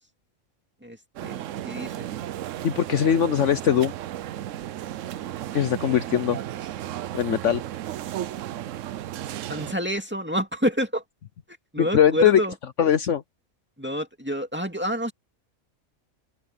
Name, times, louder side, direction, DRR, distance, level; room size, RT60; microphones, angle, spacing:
voice 1, 0.8-2.1 3.0-3.1 9.5-11.0 11.7-12.5 13.8-15.1, equal, 10° right, 2.2 m, -28 dB
sound 1, 1.2-9.7, right 12 dB, 70° right, 0.9 m, -34 dB
voice 2, 2.6-3.9 5.5-6.4 7.1-7.6 11.8-12.4 12.8-13.2, left 9 dB, 60° left, 1.1 m, -21 dB
open air
omnidirectional pair, 1.5 m